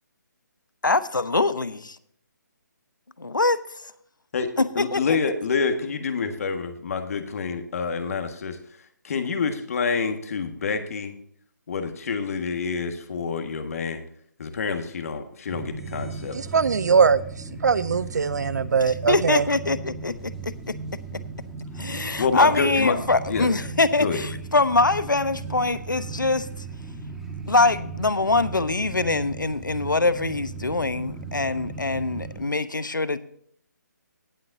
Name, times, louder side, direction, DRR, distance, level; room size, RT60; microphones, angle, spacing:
voice 1, 0.8-2.0 3.2-3.6 4.6-5.2 19.1-20.7 21.8-26.5 27.5-33.2, left 3 dB, 85° left, 14 dB, 1.0 m, -23 dB
voice 2, 4.3-8.6 9.0-11.1 11.7-14.0 14.4-16.4 22.2-23.0 23.3-23.5 24.0-24.2, left 5 dB, 50° left, 7 dB, 1.7 m, -27 dB
sound 1, 15.5-32.4, right 4 dB, 5° right, 1.8 m, -37 dB
voice 3, 16.3-17.2 17.6-19.5, right 5 dB, 60° right, 18 dB, 0.5 m, -21 dB
18.5 x 7.7 x 2.7 m, 0.66 s
figure-of-eight pair, 145°, 10 cm